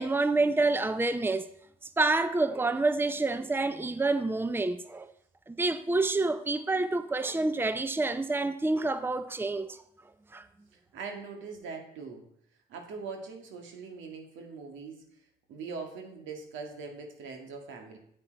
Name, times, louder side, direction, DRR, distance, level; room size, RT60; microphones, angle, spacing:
voice 1, 0.0-1.5 2.0-5.1 5.5-9.8 10.3-10.4, right 3 dB, 10° right, 0.7 m, -28 dB
voice 2, 10.9-12.2 12.7-15.0 15.5-18.0, right 4 dB, 80° right, 1.9 m, -41 dB
8.9 x 7.6 x 4.5 m
supercardioid pair, 50°, 19 cm